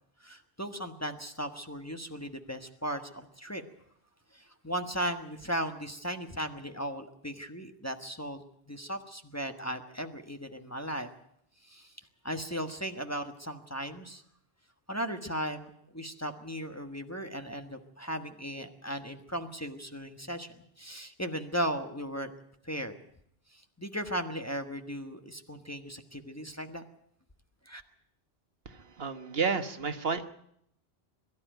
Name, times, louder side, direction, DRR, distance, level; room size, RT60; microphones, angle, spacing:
voice 1, 0.2-3.6 4.3-8.4 8.7-11.1 11.6-11.9 12.2-14.2 14.9-22.3 22.6-22.9 23.5-26.8 27.6-27.8, equal, 15° left, 5 dB, 1.3 m, -37 dB
voice 2, 28.6-30.3, right 5 dB, 65° right, 8 dB, 1.4 m, -31 dB
22.5 x 12.5 x 9.1 m, 0.73 s
omnidirectional pair, 1.1 m